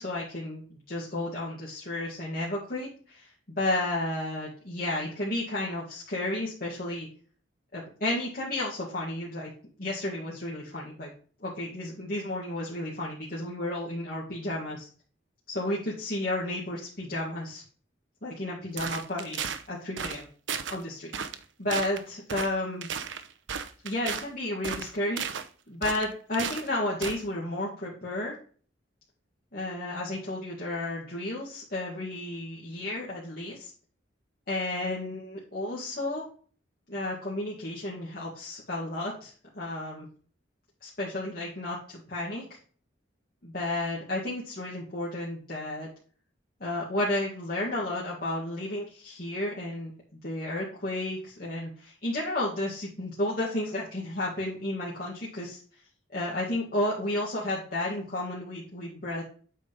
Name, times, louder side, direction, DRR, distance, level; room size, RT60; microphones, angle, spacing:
voice 1, 0.0-7.1 7.7-9.5 9.8-11.1 11.4-14.9 15.5-17.6 18.2-20.3 20.7-21.1 21.6-22.9 23.8-25.2 25.7-28.3 29.5-33.7 34.5-36.2 36.9-40.1 40.8-42.6 43.4-45.9 46.6-55.6 56.1-59.2, left 1 dB, 50° left, -6 dB, 2.1 m, -32 dB
sound 1, 18.8-19.6 20.0-20.2 20.5-20.8 21.1-21.4 21.7-22.0 22.3-22.5 22.8-24.3 24.6-25.5 25.8-26.7 27.0-27.2, right 7 dB, 80° right, 0.7 m, -34 dB
8.5 x 3.9 x 5.1 m, 0.42 s
head